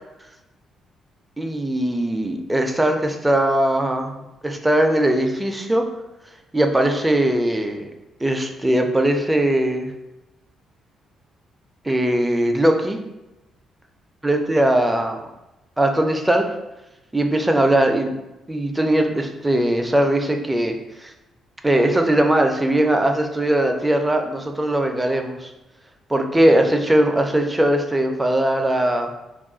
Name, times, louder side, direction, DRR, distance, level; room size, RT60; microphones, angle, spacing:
voice 1, 1.4-5.9 6.5-7.9 8.2-9.9 11.8-13.0 14.2-15.3 15.8-16.4 17.1-18.1 18.5-21.1 21.6-25.5 26.1-29.1, right 1 dB, 10° right, 4 dB, 0.4 m, -20 dB
2.3 x 2.1 x 3.7 m, 0.96 s
cardioid pair, 90°, 0 cm